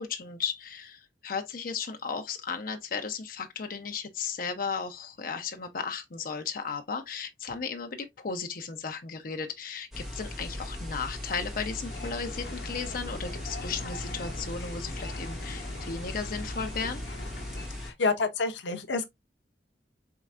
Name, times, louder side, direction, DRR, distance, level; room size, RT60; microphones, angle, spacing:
voice 1, 0.0-17.0, left 5 dB, 55° left, 0.7 m, -35 dB
sound 1, 9.9-17.9, left 1 dB, ahead, 1.7 m, -39 dB
sound 2, 11.8-17.7, left 2 dB, 75° left, 1.0 m, -41 dB
voice 2, 17.8-19.0, left 3 dB, 90° left, 0.7 m, -28 dB
4.7 x 3.2 x 2.4 m
head